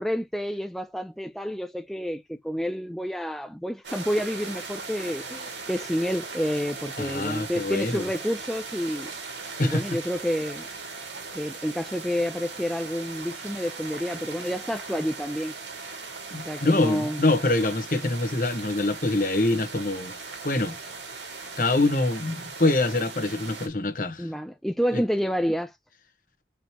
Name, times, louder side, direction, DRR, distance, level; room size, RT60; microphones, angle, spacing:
voice 1, 0.0-9.1 9.6-10.7 11.3-15.5 16.3-17.3 24.2-25.8, equal, ahead, 0.4 m, -29 dB
sound 1, 3.8-23.7, right 4 dB, 85° right, 2.4 m, -39 dB
voice 2, 7.0-8.1 9.6-9.8 16.3-20.1 20.4-20.8 21.6-24.3 24.9-25.0, left 2 dB, 50° left, 1.4 m, -25 dB
6.4 x 5.1 x 2.9 m
head